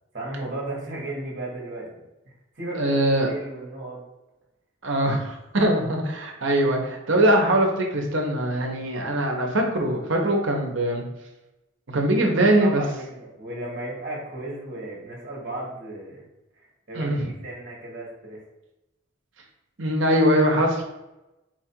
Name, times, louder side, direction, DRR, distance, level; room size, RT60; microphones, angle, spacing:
voice 1, 0.1-1.9 2.5-4.0 12.4-16.2 16.6-18.4, right 2 dB, 40° right, -3 dB, 1.3 m, -35 dB
voice 2, 2.7-3.3 4.8-11.0 11.9-12.8 16.9-17.3 19.8-20.8, right 1 dB, 65° right, 1 dB, 0.9 m, -22 dB
4.3 x 2.5 x 4.4 m, 0.97 s
head